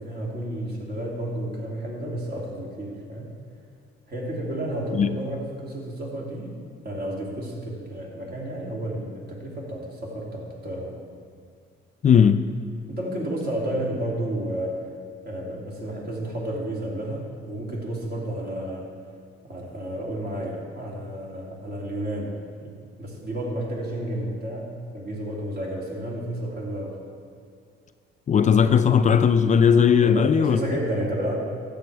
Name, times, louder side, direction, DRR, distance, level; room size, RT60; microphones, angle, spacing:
voice 1, 0.0-3.3 4.1-6.6 6.8-11.0 12.9-14.9 15.2-18.9 19.4-27.0 30.0-31.4, right 1 dB, 55° right, -3 dB, 2.7 m, -31 dB
voice 2, 12.0-12.4 28.3-30.6, left 7 dB, 40° left, 10 dB, 0.4 m, -17 dB
13.0 x 7.8 x 3.4 m, 2.2 s
cardioid pair, 90°, 20 cm